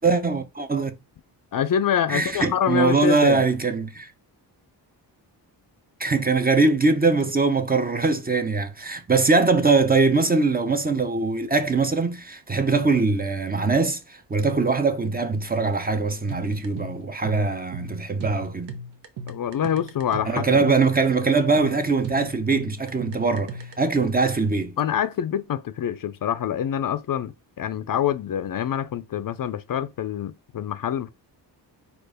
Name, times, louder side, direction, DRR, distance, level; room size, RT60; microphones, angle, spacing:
voice 1, 0.0-1.0 2.1-4.1 6.0-18.8 20.3-24.7, right 4 dB, 20° right, 0.6 m, -22 dB
voice 2, 1.5-3.4 19.3-20.6 24.0-24.1 24.8-31.1, left 9 dB, 50° left, 0.5 m, -26 dB
sound 1, 16.3-23.9, right 2 dB, 80° right, 1.0 m, -37 dB
4.4 x 2.5 x 4.9 m
cardioid pair, 90°, 42 cm